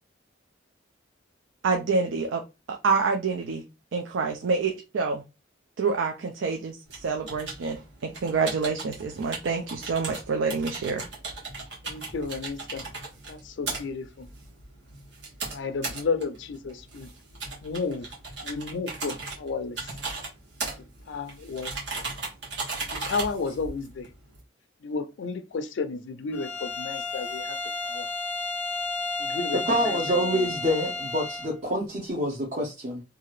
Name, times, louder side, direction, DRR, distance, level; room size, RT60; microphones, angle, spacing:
voice 1, 1.6-2.4 2.7-3.7 3.9-5.2 5.8-11.0, right 4 dB, 85° right, 0.4 m, -27 dB
sound 1, 6.9-24.4, right 3 dB, 65° right, 1.2 m, -37 dB
voice 2, 11.8-12.9 13.3-14.3 15.5-17.1 17.6-18.1 18.4-19.9 21.1-22.1 22.9-24.1 24.8-27.6 27.8-28.1 29.2-30.0 30.3-30.5, left 4 dB, 70° left, 0.4 m, -32 dB
Bowed string instrument, 26.3-31.6, left 3 dB, 10° left, 0.5 m, -32 dB
voice 3, 29.5-33.0, equal, 40° right, 0.6 m, -27 dB
2.8 x 2.4 x 3.1 m
head